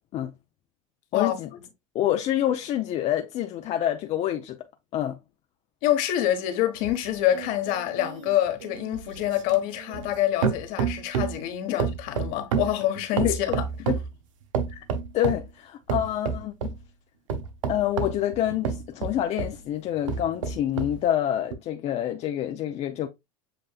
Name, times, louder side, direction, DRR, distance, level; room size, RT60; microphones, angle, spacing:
voice 1, 1.1-1.5 1.9-4.6 4.9-5.2 11.7-11.8 13.2-14.0 14.7-14.8 15.1-16.8 17.7-23.1, left 11 dB, 45° left, 0.5 m, -27 dB
voice 2, 5.8-13.5, left 12 dB, 60° left, 1.2 m, -26 dB
sound 1, 6.8-10.2 10.4-11.4 11.8-14.1 14.5-15.5 15.9-16.8 17.3-19.6 20.0-21.0 21.5-21.6, right 6 dB, 85° right, 0.7 m, -29 dB
7.6 x 2.6 x 2.3 m
hypercardioid pair, 100°, 16 cm